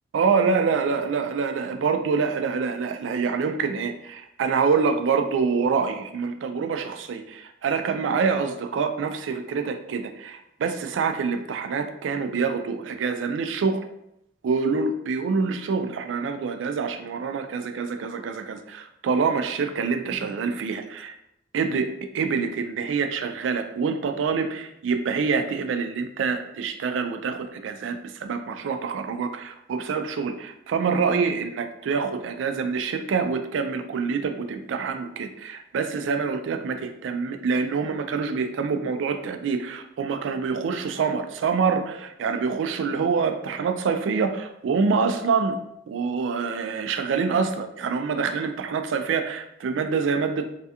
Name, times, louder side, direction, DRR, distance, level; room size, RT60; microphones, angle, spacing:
voice 1, 0.1-13.8 14.4-21.1 21.5-21.9 22.1-45.6 45.9-50.5, right 5 dB, 85° right, 7 dB, 0.3 m, -26 dB
3.2 x 2.4 x 2.7 m, 0.81 s
head